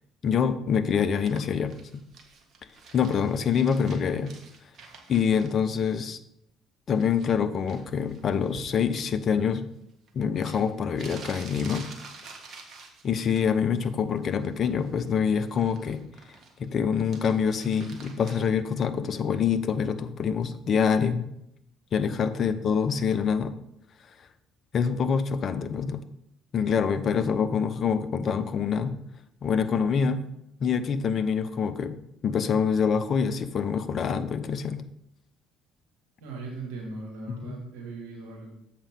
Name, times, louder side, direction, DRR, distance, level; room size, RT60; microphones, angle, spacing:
voice 1, 0.2-1.7 2.9-4.3 5.1-6.2 6.9-9.6 10.1-11.9 13.0-16.0 16.6-21.3 21.9-23.5 24.7-26.0 26.5-28.9 29.4-30.2 30.6-32.0 32.2-34.8 37.4-37.6, left 6 dB, 45° left, 10 dB, 0.6 m, -25 dB
sound 1, 1.2-5.5 6.9-7.4 7.7-9.1 10.1-10.2 10.4-13.4 13.8-14.2 14.5-16.7 17.0-18.5, right 4 dB, 45° right, 1.5 m, -48 dB
voice 2, 36.2-38.5, right 3 dB, 70° right, -2 dB, 1.7 m, -39 dB
7.2 x 5.1 x 5.3 m, 0.78 s
figure-of-eight pair, 55°, 0 cm